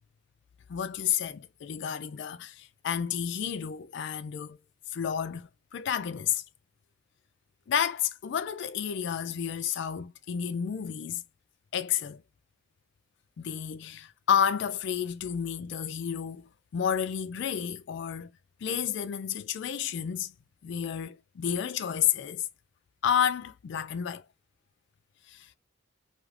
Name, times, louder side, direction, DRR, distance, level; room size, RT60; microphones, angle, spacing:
voice 1, 0.7-4.6 4.9-6.4 7.7-11.2 11.7-12.2 13.4-18.3 18.6-20.3 20.6-22.5 23.0-24.2 25.3-25.5, left 8 dB, 55° left, 0.3 m, -31 dB
2.4 x 2.4 x 3.2 m
head